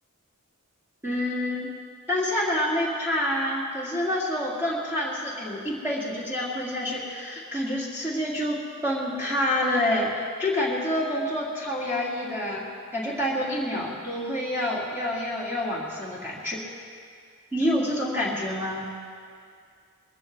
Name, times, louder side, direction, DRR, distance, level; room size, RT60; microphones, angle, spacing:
voice 1, 1.0-1.7 2.1-16.6 17.5-18.9, left 1 dB, 10° right, -6 dB, 2.1 m, -27 dB
20.5 x 16.0 x 3.3 m, 2.2 s
head